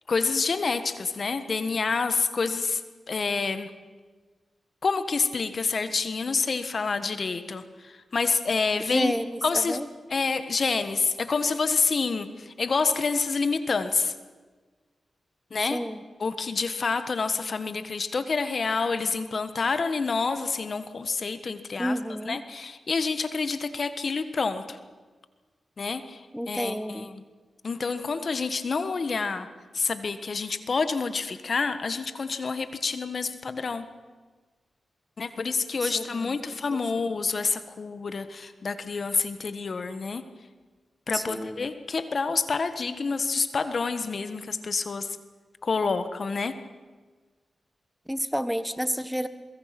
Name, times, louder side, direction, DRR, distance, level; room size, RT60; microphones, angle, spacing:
voice 1, 0.1-2.8 3.1-3.7 4.8-9.1 9.4-9.8 10.1-14.1 15.5-15.8 16.2-22.0 22.3-24.8 25.8-26.2 26.5-27.1 27.6-29.5 29.7-33.9 35.2-40.2 41.1-45.1 45.6-46.6, left 4 dB, 60° left, 11 dB, 1.5 m, -28 dB
voice 2, 8.8-9.9 15.6-16.0 21.8-22.4 26.3-27.1 35.8-36.4 36.7-37.1 41.1-41.7 48.1-49.3, equal, ahead, 12 dB, 1.4 m, -31 dB
23.0 x 22.0 x 6.0 m, 1.4 s
cardioid pair, 50°, 0 cm